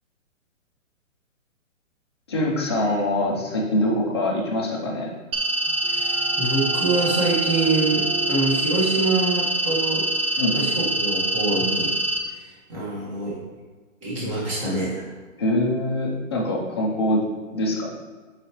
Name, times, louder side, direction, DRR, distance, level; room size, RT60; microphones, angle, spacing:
voice 1, 2.3-5.1 10.4-10.8 15.4-17.2 17.5-17.9, left 1 dB, 20° left, -3 dB, 0.6 m, -24 dB
sound 1, 5.3-12.2, right 1 dB, 45° right, 0.7 m, -24 dB
sound 2, 5.3-10.8, right 6 dB, 90° right, 0.6 m, -37 dB
voice 2, 5.9-10.1 10.5-12.0 12.2-13.4 14.0-15.0, right 3 dB, 25° right, -6 dB, 1.6 m, -25 dB
6.9 x 4.8 x 3.0 m, 1.4 s
hypercardioid pair, 165°, 40 cm